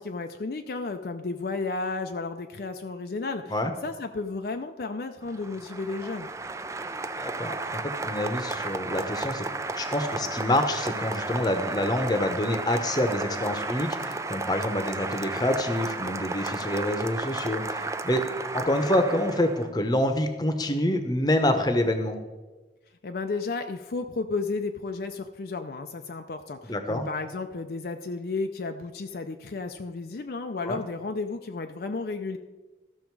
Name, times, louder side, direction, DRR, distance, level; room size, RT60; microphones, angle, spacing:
voice 1, 0.0-3.6 3.8-6.3 23.0-32.4, left 3 dB, 60° left, 6 dB, 0.5 m, -33 dB
Applause, 5.2-19.7, right 3 dB, 15° right, 0.4 m, -33 dB
voice 2, 7.2-9.5 9.7-22.2 26.6-27.1 30.6-30.8, left 1 dB, 25° left, 7 dB, 0.9 m, -27 dB
13.5 x 6.2 x 4.7 m, 1.2 s
head